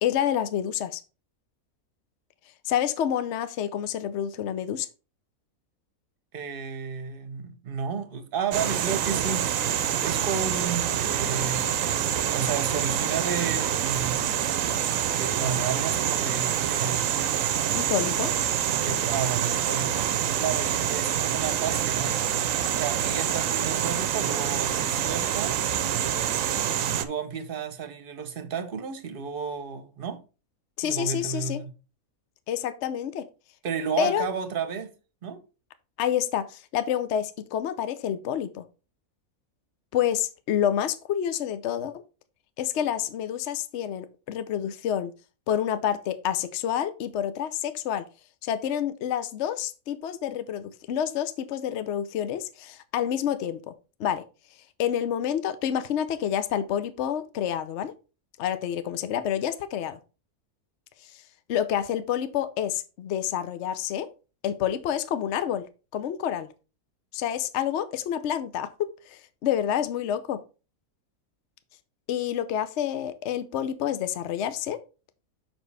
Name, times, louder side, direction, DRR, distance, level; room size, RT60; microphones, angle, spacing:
voice 1, 0.0-1.0 2.6-4.9 17.7-18.3 30.8-31.6 32.5-33.2 34.0-34.3 36.0-38.6 39.9-42.0 42.6-45.1 45.5-48.0 48.4-53.7 54.0-54.2 54.8-57.9 58.4-60.0 61.1-61.2 61.5-64.1 64.4-65.6 65.9-66.5 67.1-70.4 72.1-74.8, left 10 dB, 60° left, 0.8 m, -28 dB
voice 2, 6.3-9.6 10.0-14.2 15.1-17.1 18.8-20.1 20.4-22.2 22.7-25.6 26.9-30.2 30.8-31.7 33.6-34.9 35.2-35.4, right 6 dB, 45° right, 1.0 m, -32 dB
sound 1, 8.5-27.0, right 10 dB, 70° right, 1.0 m, -26 dB
7.2 x 6.0 x 3.3 m
omnidirectional pair, 1.5 m